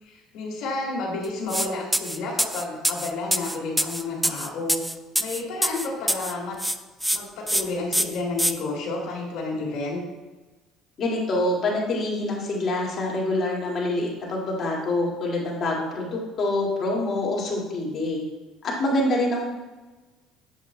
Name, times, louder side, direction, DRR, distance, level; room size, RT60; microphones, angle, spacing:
voice 1, 0.0-4.8 5.2-6.6 7.1-10.0, left 3 dB, 65° left, -4 dB, 2.0 m, -31 dB
sound 1, 1.5-1.7 1.9-6.3 6.6-7.2 7.5-7.6 7.9-8.5, right 1 dB, 5° right, 0.3 m, -24 dB
voice 2, 11.0-18.3 18.6-19.5, left 2 dB, 45° left, -3 dB, 2.1 m, -26 dB
7.5 x 7.1 x 2.2 m, 1.2 s
supercardioid pair, 90°, 0 cm